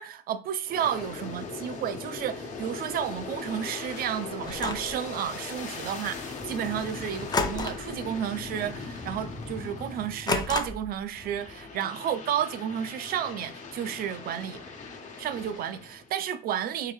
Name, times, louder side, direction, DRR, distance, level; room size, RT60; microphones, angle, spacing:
voice 1, 0.0-14.6 15.2-16.9, right 9 dB, 60° right, 0.5 m, -32 dB
Aircraft, 0.6-10.7 11.1-16.1, left 4 dB, 45° left, 1.2 m, -39 dB
sound 1, 4.5-5.0 7.3-8.0 8.3-8.6 9.0-9.1 10.3-11.0, left 4 dB, 25° left, 0.6 m, -30 dB
3.7 x 3.4 x 3.0 m
cardioid pair, 110°, 17 cm